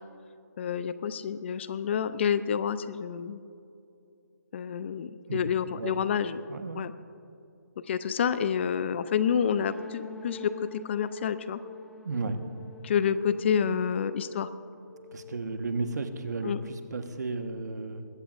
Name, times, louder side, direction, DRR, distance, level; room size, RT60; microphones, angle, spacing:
voice 1, 0.6-3.4 4.5-6.4 6.7-6.9 7.9-11.6 12.8-14.5 16.4-16.6, left 7 dB, 40° left, 14 dB, 0.6 m, -28 dB
voice 2, 6.5-6.8 12.0-12.4 15.1-18.1, right 3 dB, 65° right, 7 dB, 1.4 m, -33 dB
sound 1, 9.2-16.9, left 4 dB, 5° left, 0.9 m, -47 dB
21.0 x 16.0 x 2.6 m, 2.5 s
figure-of-eight pair, 150°, 10 cm